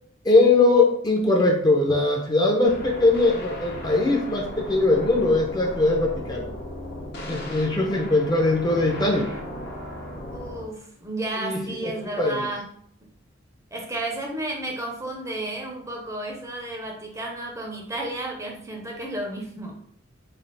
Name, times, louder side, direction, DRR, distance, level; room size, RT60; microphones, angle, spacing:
voice 1, 0.2-6.5 7.3-9.3 11.4-11.9 12.2-12.5, left 2 dB, 20° left, 0 dB, 0.6 m, -21 dB
sound 1, 2.6-10.6, left 1 dB, 55° left, 0.8 m, -36 dB
voice 2, 10.3-12.7 13.7-19.7, right 1 dB, 15° right, 0 dB, 0.6 m, -32 dB
3.3 x 2.4 x 3.9 m, 0.63 s
head